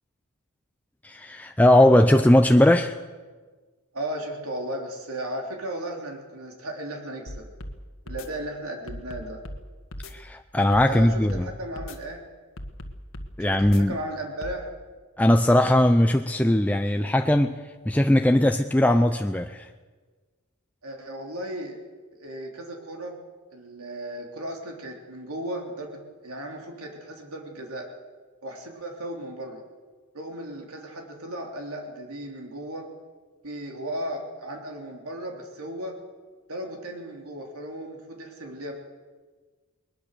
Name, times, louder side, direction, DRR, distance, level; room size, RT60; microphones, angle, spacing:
voice 1, 1.0-3.0 10.1-11.5 13.4-14.0 15.2-17.6 17.9-19.7, left 1 dB, 5° left, 6 dB, 0.6 m, -19 dB
voice 2, 3.9-7.5 8.1-9.4 10.8-12.2 13.4-14.7 20.8-21.8 22.1-23.2 23.5-27.9 28.4-29.6 30.1-32.9 33.4-36.0 36.5-38.7, right 1 dB, 75° right, 1 dB, 3.5 m, -35 dB
sound 1, 7.3-7.8 8.1-8.3 8.9-9.6 9.9-10.1 10.7-11.5 11.8-12.0 12.6-13.3 13.6-13.8 14.4-14.6, left 1 dB, 65° left, 1.6 m, -37 dB
21.0 x 20.5 x 6.8 m, 1.4 s
head